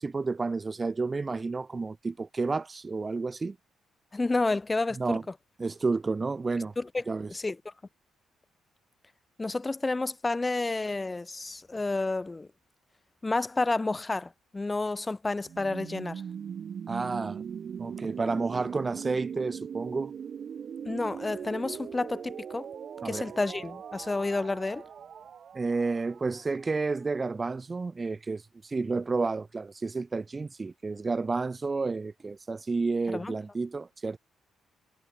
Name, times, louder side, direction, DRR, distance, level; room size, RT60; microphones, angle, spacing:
voice 1, 0.0-3.6 5.0-5.2 5.6-6.7 7.1-7.3 16.9-17.4 17.8-20.1 23.0-23.3 25.5-34.2, right 3 dB, 25° right, 0.8 m, -31 dB
voice 2, 4.1-5.2 6.8-7.0 7.3-7.7 9.4-12.5 13.2-16.2 20.8-22.7 23.0-24.8 33.1-33.3, left 3 dB, 20° left, 1.2 m, -30 dB
sound 1, 15.4-27.2, right 7 dB, 55° right, 0.5 m, -40 dB
cardioid pair, 90°, 0 cm